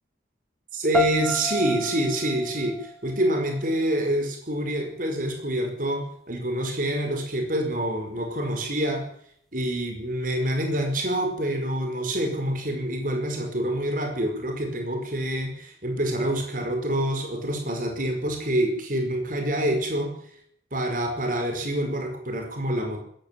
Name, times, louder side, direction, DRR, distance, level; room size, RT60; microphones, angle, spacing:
voice 1, 0.7-9.1 9.5-20.2 20.7-23.0, right 1 dB, 45° right, 4 dB, 5.3 m, -27 dB
sound 1, 0.9-3.9, left 1 dB, ahead, 1.3 m, -31 dB
20.5 x 14.5 x 9.1 m, 0.65 s
head